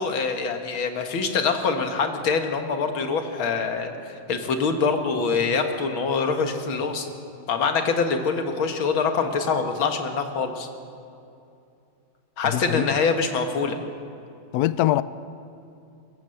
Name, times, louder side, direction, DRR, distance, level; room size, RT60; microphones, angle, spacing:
voice 1, 0.0-7.1 7.5-10.7 12.4-13.8, left 5 dB, 70° left, 6 dB, 2.3 m, -24 dB
voice 2, 12.4-12.9 14.5-15.0, left 14 dB, 90° left, 16 dB, 0.8 m, -22 dB
23.5 x 14.5 x 7.8 m, 2.6 s
omnidirectional pair, 2.3 m